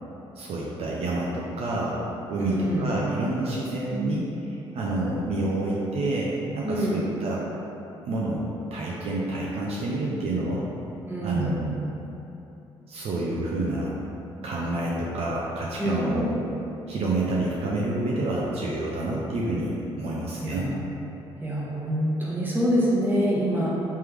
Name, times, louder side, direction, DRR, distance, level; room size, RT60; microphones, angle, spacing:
voice 1, 0.4-2.0 2.3-7.4 8.1-8.4 8.7-10.7 11.2-11.8 12.9-13.9 14.4-16.3 16.9-20.7, right 2 dB, 60° right, -4 dB, 0.5 m, -28 dB
voice 2, 2.4-2.9 6.6-7.1 11.1-11.5 15.8-16.3 20.4-20.8 21.4-23.7, equal, 15° right, -7 dB, 1.2 m, -25 dB
3.3 x 3.1 x 3.3 m, 3.0 s
supercardioid pair, 60°, 11 cm